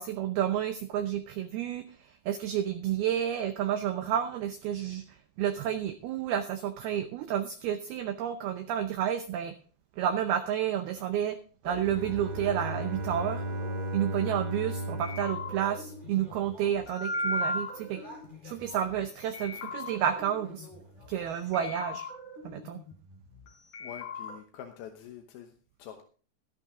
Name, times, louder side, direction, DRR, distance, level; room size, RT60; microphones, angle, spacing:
voice 1, 0.0-9.5 10.0-11.4 11.6-13.4 13.9-18.0 18.4-20.7 21.1-22.1 22.4-22.8, right 10 dB, 85° right, 9 dB, 2.2 m, -30 dB
sound 1, 11.6-21.5, right 1 dB, 10° right, 4.0 m, -49 dB
Bowed string instrument, 11.8-16.6, right 1 dB, 60° right, 4.1 m, -36 dB
sound 2, 15.0-19.0 19.3-21.3 21.5-23.5 23.7-24.3, left 1 dB, 40° left, 4.7 m, -37 dB
voice 2, 23.8-26.0, left 10 dB, 70° left, 5 dB, 2.4 m, -46 dB
13.0 x 12.0 x 3.7 m, 0.39 s
omnidirectional pair, 5.4 m